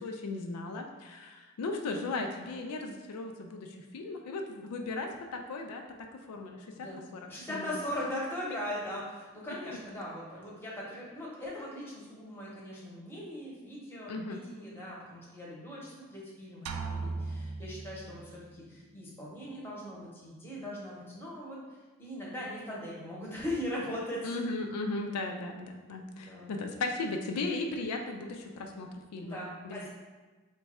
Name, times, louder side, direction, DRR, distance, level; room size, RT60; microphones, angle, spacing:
voice 1, 0.0-7.2 7.5-7.8 14.1-14.4 24.2-29.4 29.6-29.9, left 3 dB, 85° left, 3 dB, 0.4 m, -37 dB
voice 2, 7.3-21.6 22.0-24.3 26.1-26.5 29.2-29.9, left 1 dB, 10° left, -5 dB, 0.8 m, -40 dB
sound 1, 16.7-18.5, right 3 dB, 75° right, 0.3 m, -37 dB
3.2 x 2.3 x 4.1 m, 1.3 s
head